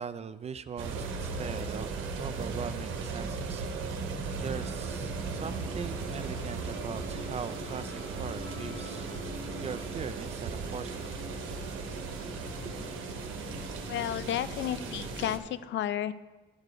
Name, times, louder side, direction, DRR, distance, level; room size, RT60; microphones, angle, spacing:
voice 1, 0.0-9.1 9.6-11.2, right 6 dB, 35° right, 13 dB, 0.4 m, -41 dB
sound 1, 0.8-15.4, right 4 dB, 90° right, 0.9 m, -37 dB
sound 2, 4.3-15.4, left 2 dB, 30° left, 1.0 m, -45 dB
voice 2, 13.9-16.1, left 11 dB, 65° left, 15 dB, 0.5 m, -32 dB
12.0 x 4.9 x 4.6 m, 1.2 s
cardioid pair, 90°, 20 cm